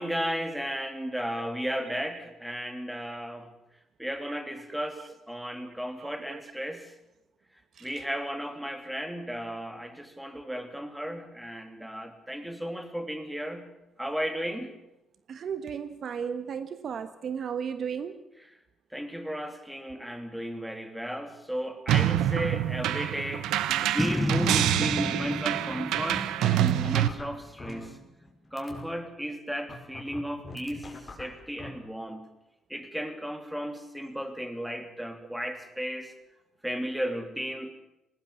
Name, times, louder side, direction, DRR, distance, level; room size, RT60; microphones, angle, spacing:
voice 1, 0.0-3.5 4.0-7.0 7.8-13.7 14.0-14.8 18.9-23.5 23.9-28.0 28.5-32.3 32.7-36.1 36.6-37.7, equal, 5° right, 8 dB, 3.2 m, -34 dB
voice 2, 6.0-6.4 7.7-7.9 15.3-18.3, right 7 dB, 60° right, 12 dB, 1.3 m, -35 dB
sound 1, 21.9-27.1, right 12 dB, 85° right, 1.0 m, -26 dB
sound 2, 23.7-24.3 24.6-24.8 25.3-25.4 25.7-28.3 28.6-28.8 29.7-31.7, left 3 dB, 30° left, 5.9 m, -43 dB
Boom, 24.0-27.3, left 1 dB, 10° left, 0.7 m, -31 dB
20.0 x 18.5 x 8.5 m, 0.89 s
cardioid pair, 90°, 0 cm